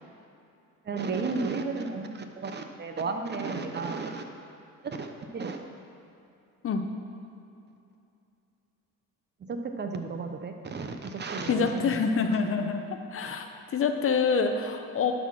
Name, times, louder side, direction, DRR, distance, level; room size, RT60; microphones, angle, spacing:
voice 1, 0.9-4.2 4.8-5.6 9.4-11.9 13.2-13.3, right 4 dB, 30° right, 6 dB, 0.7 m, -33 dB
voice 2, 11.5-13.5 13.7-15.1, left 5 dB, 40° left, 6 dB, 0.7 m, -26 dB
11.5 x 4.1 x 6.3 m, 2.7 s
cardioid pair, 105°, 34 cm